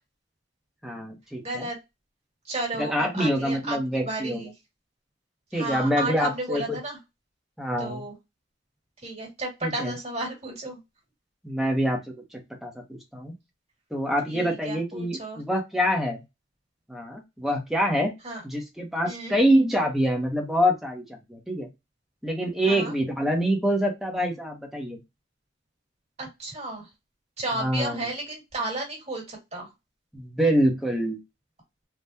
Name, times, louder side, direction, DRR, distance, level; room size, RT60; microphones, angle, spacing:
voice 1, 0.8-1.7 2.8-4.4 5.5-6.8 7.6-8.0 9.6-9.9 11.4-13.3 13.9-16.2 16.9-18.1 18.4-21.0 21.3-21.7 22.2-25.0 27.6-28.0 30.1-31.2, equal, ahead, 1 dB, 0.7 m, -25 dB
voice 2, 1.4-1.8 2.4-4.5 5.5-7.0 7.8-8.1 9.0-10.8 14.3-15.4 18.2-18.4 19.0-19.4 22.7-22.9 26.2-26.9 27.4-29.7, right 2 dB, 35° right, -2 dB, 1.6 m, -33 dB
3.4 x 2.2 x 2.6 m, 0.22 s
head